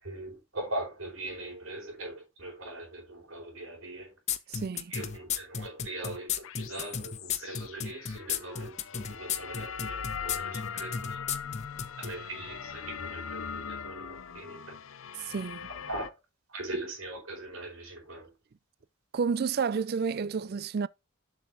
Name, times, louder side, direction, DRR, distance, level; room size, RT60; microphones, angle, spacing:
voice 1, 0.0-4.1 4.9-11.2 12.0-14.8 15.7-16.1 16.5-18.3, right 2 dB, 80° right, 4.6 m, -40 dB
sound 1, 4.3-12.1, left 8 dB, 35° left, 0.6 m, -33 dB
voice 2, 4.5-4.9 15.3-15.7 19.1-20.9, right 5 dB, 50° right, 0.4 m, -30 dB
sound 2, 6.4-16.1, left 7 dB, 70° left, 0.6 m, -40 dB
7.3 x 6.2 x 4.0 m
head